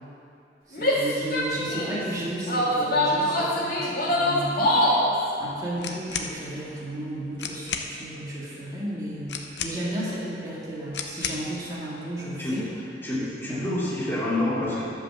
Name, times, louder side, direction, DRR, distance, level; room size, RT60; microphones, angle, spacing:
Female speech woman speaking / Yell, 0.7-2.0 2.5-5.1, left 1 dB, 55° left, 2.2 m, -23 dB
voice 1, 0.7-4.8 5.4-12.6 13.1-13.7, right 1 dB, 20° right, -8 dB, 2.0 m, -33 dB
sound 1, 5.8-6.3 7.1-7.2 7.4-7.9 9.3-10.0 10.9-11.5, left 6 dB, 75° left, 0.8 m, -33 dB
voice 2, 13.0-14.8, left 1 dB, 15° left, -8 dB, 2.7 m, -27 dB
12.0 x 5.3 x 7.2 m, 2.6 s
head